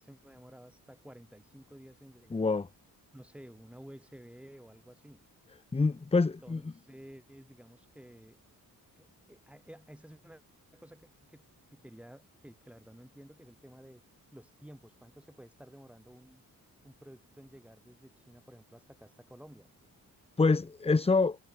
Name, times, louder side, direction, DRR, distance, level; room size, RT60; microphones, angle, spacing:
voice 1, 0.0-2.6 3.1-5.2 6.1-8.4 9.0-10.4 10.7-14.0 14.3-16.4 16.8-19.7, equal, 5° right, 7.7 m, -53 dB
voice 2, 2.3-2.7 5.7-6.6 20.4-21.4, left 3 dB, 15° left, 0.9 m, -26 dB
wide cardioid pair, 140°, 35 cm